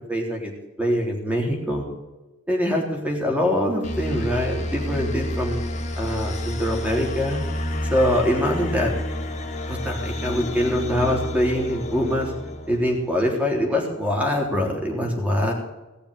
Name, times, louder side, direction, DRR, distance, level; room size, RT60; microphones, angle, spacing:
voice 1, 0.1-0.5 0.8-1.8 2.5-5.6 6.0-7.4 7.9-8.9 9.7-12.3 12.7-15.5, equal, 5° right, 0 dB, 3.5 m, -23 dB
sound 1, 3.8-13.3, left 1 dB, 35° left, 1.8 m, -30 dB
18.0 x 6.9 x 8.3 m, 1.1 s
head